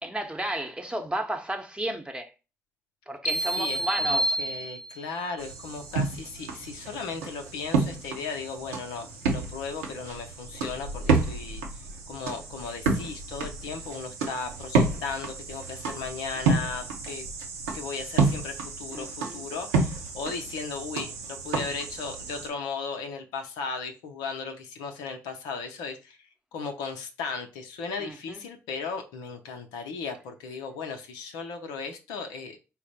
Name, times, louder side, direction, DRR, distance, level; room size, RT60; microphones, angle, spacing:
voice 1, 0.0-2.3 3.1-4.4 18.9-19.4 28.0-28.4, right 1 dB, 10° right, 0.8 m, -33 dB
sound 1, 3.2-5.2, right 1 dB, 15° left, 0.9 m, -28 dB
voice 2, 3.3-17.3 17.7-26.2 26.5-32.6, left 5 dB, 70° left, 0.6 m, -36 dB
sound 2, 5.4-22.5, right 4 dB, 80° right, 0.7 m, -30 dB
4.1 x 2.0 x 4.0 m
figure-of-eight pair, 40°, 7 cm